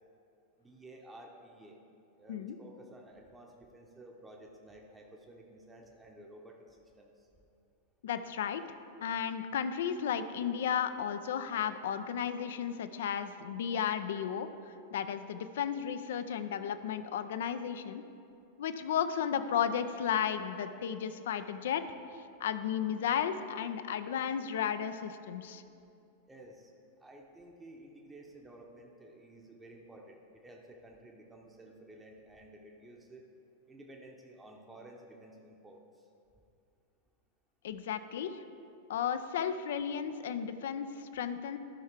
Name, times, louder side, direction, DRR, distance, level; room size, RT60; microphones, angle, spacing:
voice 1, 0.6-1.8 2.2-7.3 26.3-26.7 27.0-33.3 33.7-36.1, right 1 dB, 10° right, 0 dB, 0.8 m, -53 dB
voice 2, 8.0-8.6 9.0-14.5 14.9-18.0 18.6-21.8 22.4-25.6 37.6-38.4 38.9-41.6, left 8 dB, 60° left, 10 dB, 0.4 m, -34 dB
12.5 x 5.5 x 4.5 m, 2.6 s
figure-of-eight pair, 90°, 0 cm